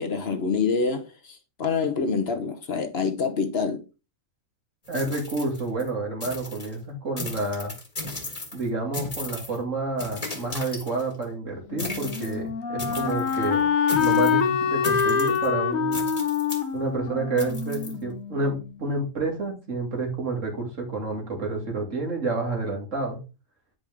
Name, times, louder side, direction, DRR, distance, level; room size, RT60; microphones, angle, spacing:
voice 1, 0.0-3.8, left 5 dB, 50° left, 1.1 m, -26 dB
sound 1, 4.9-5.9 6.2-6.7 7.2-8.7 8.9-9.6 10.0-11.2 11.8-12.3 12.8-13.5 13.9-14.4 14.8-15.5 15.9-16.7 17.4-17.9, left 2 dB, 30° left, 1.6 m, -36 dB
voice 2, 4.9-7.7 8.5-13.7 14.0-16.3 16.7-23.2, right 2 dB, 65° right, 2.6 m, -29 dB
Wind instrument woodwind instrument, 11.7-18.6, left 7 dB, 75° left, 1.3 m, -25 dB
8.8 x 5.3 x 3.5 m
omnidirectional pair, 1.4 m